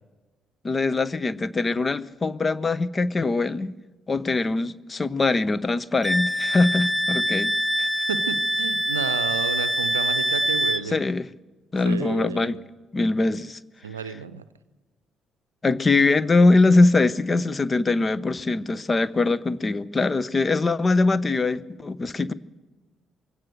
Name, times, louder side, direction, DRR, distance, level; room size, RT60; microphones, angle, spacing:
voice 1, 0.6-3.7 4.1-7.5 7.8-7.9 10.8-11.3 11.7-12.6 12.9-13.6 14.0-14.2 15.6-22.3, left 3 dB, 30° left, 19 dB, 0.9 m, -22 dB
Wind instrument woodwind instrument, 6.0-10.8, equal, 5° right, 0.9 m, -24 dB
voice 2, 8.1-11.0 11.8-12.6 13.8-14.4, right 6 dB, 85° right, 15 dB, 0.6 m, -31 dB
22.5 x 16.5 x 7.8 m, 1.2 s
figure-of-eight pair, 45°, 0 cm